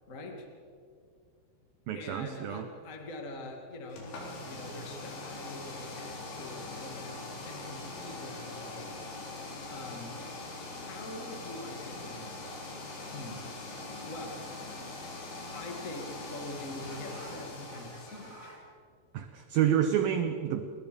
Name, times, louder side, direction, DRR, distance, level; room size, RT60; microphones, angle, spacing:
voice 1, 0.1-0.5 1.9-9.0 9.7-10.2 10.9-12.7 13.1-13.4 14.0-14.9 15.5-18.6, left 2 dB, 30° left, 2 dB, 1.4 m, -44 dB
voice 2, 1.9-2.7 19.1-20.6, right 10 dB, 70° right, 7 dB, 2.3 m, -28 dB
sound 1, 3.9-18.5, left 2 dB, 80° left, 6.5 m, -42 dB
Speech / Shout, 14.8-16.3 16.7-18.6, right 2 dB, 20° right, 4.5 m, -53 dB
30.0 x 21.5 x 5.3 m, 2.2 s
omnidirectional pair, 5.1 m